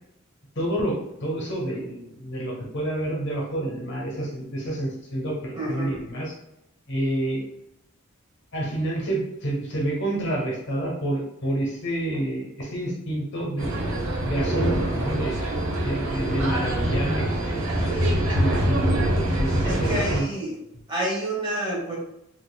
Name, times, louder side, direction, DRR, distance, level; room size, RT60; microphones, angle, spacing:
voice 1, 0.6-6.3 6.9-7.4 8.5-15.4 15.8-20.3, right 1 dB, 55° left, -2 dB, 0.9 m, -29 dB
voice 2, 5.5-5.9 19.6-20.5 20.9-22.0, right 1 dB, 20° right, -6 dB, 1.3 m, -28 dB
sound 1, 13.6-20.2, right 1 dB, 80° right, 0.8 m, -24 dB
4.0 x 2.9 x 2.2 m, 0.83 s
head